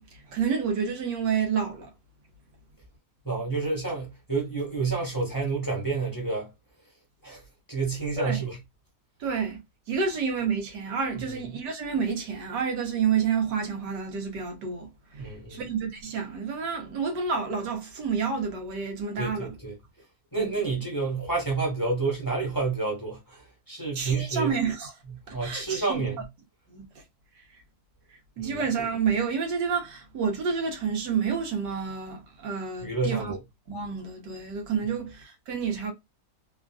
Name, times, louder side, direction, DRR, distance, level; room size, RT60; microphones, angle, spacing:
voice 1, 0.0-1.9 8.2-8.4 9.2-9.6 9.9-19.5 20.3-20.6 23.9-24.9 25.3-26.1 26.7-26.8 28.4-33.3 33.7-35.9, right 6 dB, 85° right, 1.6 m, -29 dB
voice 2, 3.2-6.5 7.2-7.4 7.7-8.6 11.3-11.4 15.2-15.6 19.2-19.7 20.3-24.5 25.3-26.2 28.4-28.6 32.8-33.4, right 4 dB, 15° left, 0.9 m, -29 dB
3.5 x 2.4 x 2.3 m
omnidirectional pair, 1.8 m